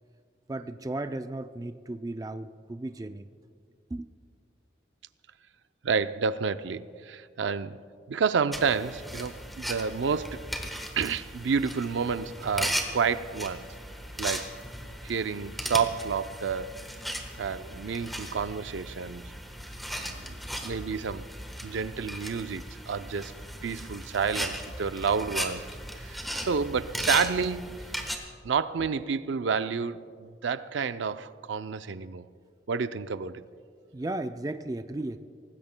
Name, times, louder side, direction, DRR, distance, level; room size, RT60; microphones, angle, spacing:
voice 1, 0.5-3.3 3.9-4.1 33.9-35.2, right 2 dB, 20° right, 0.3 m, -35 dB
voice 2, 5.8-7.8 8.1-10.4 11.0-13.6 14.2-14.5 15.0-16.7 17.4-19.3 19.9-21.3 21.6-23.3 23.6-25.7 26.0-27.8 28.4-32.2 32.7-33.4, right 5 dB, 85° right, 0.5 m, -30 dB
sound 1, 8.5-28.1, equal, ahead, 1.2 m, -37 dB
24.5 x 18.5 x 2.2 m
head